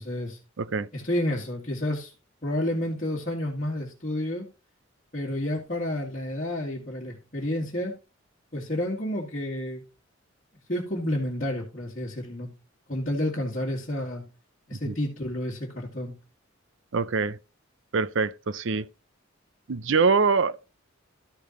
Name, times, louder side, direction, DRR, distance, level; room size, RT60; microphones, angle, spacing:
voice 1, 0.0-0.4 0.9-2.1 2.4-4.5 5.1-8.0 8.5-9.8 10.7-12.5 12.9-14.2 14.7-16.1, left 1 dB, 40° left, 2.1 m, -30 dB
voice 2, 0.6-0.9 14.8-14.9 16.9-17.4 17.9-18.9 19.7-20.6, right 4 dB, 65° right, 0.6 m, -24 dB
13.0 x 6.8 x 3.1 m
head